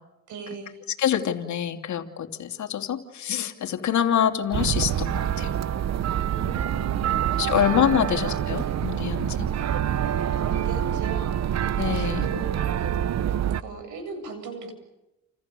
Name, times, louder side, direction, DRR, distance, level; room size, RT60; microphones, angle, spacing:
voice 1, 0.3-0.8 6.1-7.6 7.9-8.8 10.4-11.3 11.9-13.0 13.6-14.7, right 4 dB, 80° right, 8 dB, 7.9 m, -39 dB
voice 2, 1.0-5.5 7.4-9.5 11.8-12.3, left 9 dB, 70° left, 6 dB, 3.0 m, -25 dB
sound 1, 4.5-13.6, right 10 dB, 60° right, 1.0 m, -26 dB
29.0 x 29.0 x 7.0 m, 0.95 s
cardioid pair, 90°, 30 cm